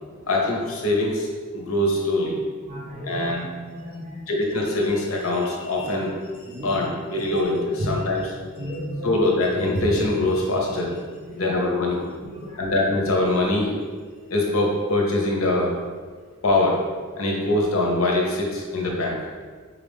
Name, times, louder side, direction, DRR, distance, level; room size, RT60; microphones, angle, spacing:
voice 1, 0.3-2.4 3.0-3.4 4.3-6.1 6.5-8.3 9.0-10.9 11.3-12.0 12.6-13.7 14.3-15.7 16.4-16.8 17.2-19.2, left 2 dB, 70° left, -1 dB, 0.8 m, -23 dB
voice 2, 2.7-3.3 3.7-4.3 5.7-5.9 6.5-6.9 7.2-7.3 7.8-7.9 8.6-9.1 11.2-11.6 12.2-12.7 17.1-17.2, equal, 35° right, -4 dB, 0.8 m, -34 dB
4.6 x 2.4 x 3.5 m, 1.6 s
head